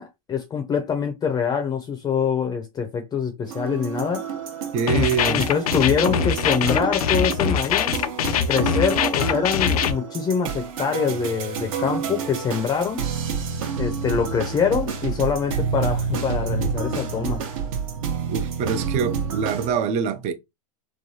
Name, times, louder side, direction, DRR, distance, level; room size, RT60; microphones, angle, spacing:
voice 1, 0.0-4.2 4.9-8.0 8.5-13.0 13.8-17.4, left 6 dB, 20° left, 0.5 m, -24 dB
sound 1, 3.5-19.7, right 6 dB, 65° right, 0.9 m, -29 dB
voice 2, 4.7-5.4 18.3-20.3, right 6 dB, 35° right, 0.5 m, -24 dB
sound 2, 4.9-9.9, left 8 dB, 80° left, 0.4 m, -23 dB
3.2 x 2.2 x 2.6 m
hypercardioid pair, 115°, 19 cm